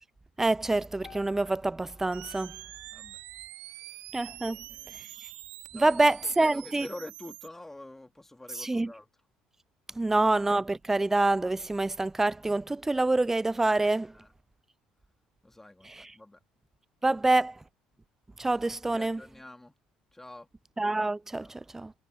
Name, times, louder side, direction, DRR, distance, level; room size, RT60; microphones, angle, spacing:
voice 1, 0.4-2.6 4.1-4.6 5.7-6.9 8.6-8.9 10.0-14.1 17.0-17.5 18.4-19.2 20.8-21.9, right 2 dB, 15° right, 0.3 m, -26 dB
sound 1, 1.0-5.2, left 8 dB, 45° left, 7.8 m, -58 dB
sound 2, 2.1-7.5, right 17 dB, 70° right, 2.3 m, -46 dB
voice 2, 2.9-3.2 3.5-4.1 4.4-5.2 5.7-9.1 9.9-10.2 14.0-14.3 15.4-16.4 17.1-17.3 18.8-19.8 20.1-20.5 21.4-21.8, left 1 dB, 10° left, 2.8 m, -48 dB
hypercardioid pair, 60°, 3 cm